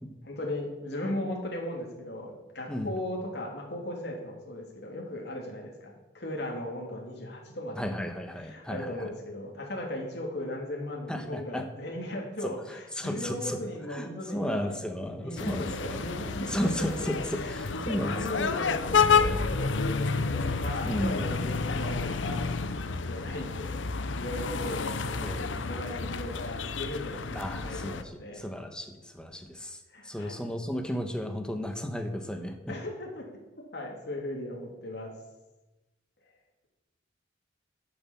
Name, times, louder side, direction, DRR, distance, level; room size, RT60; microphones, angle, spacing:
voice 1, 0.2-7.9 8.4-14.7 15.2-16.9 17.3-23.7 24.2-28.4 29.9-30.4 32.7-33.3 33.7-35.1, left 1 dB, 60° left, -1 dB, 3.2 m, -37 dB
voice 2, 7.8-9.1 11.1-11.6 12.4-13.6 13.9-16.0 16.5-18.2 20.8-21.2 25.2-25.5 27.3-29.8 30.0-32.7, equal, 5° left, 5 dB, 1.3 m, -34 dB
sound 1, 15.4-28.0, left 5 dB, 80° left, 0.8 m, -30 dB
13.0 x 7.4 x 7.3 m, 1.1 s
head